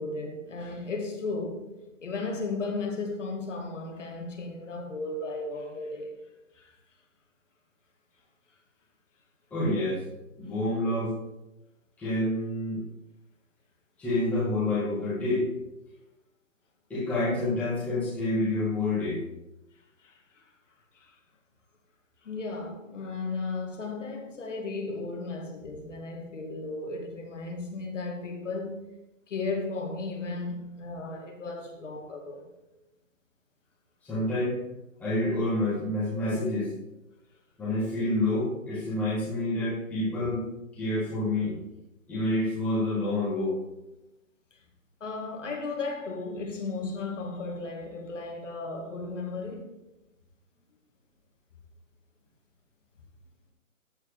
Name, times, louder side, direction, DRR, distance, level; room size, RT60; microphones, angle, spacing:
voice 1, 0.0-6.1 6.5-6.7 20.0-20.5 20.9-21.2 22.2-28.9 29.3-32.5 44.5-44.6 45.0-49.8, left 3 dB, 60° left, 2.2 m, -35 dB
voice 2, 9.5-10.0 10.4-11.2 12.0-12.8 14.0-15.5 16.9-19.2 34.0-34.6 35.0-36.7 37.6-40.5 40.7-41.5 42.1-43.6, left 1 dB, 5° left, 1.7 m, -28 dB
13.5 x 4.7 x 5.0 m
hypercardioid pair, 175°, 41 cm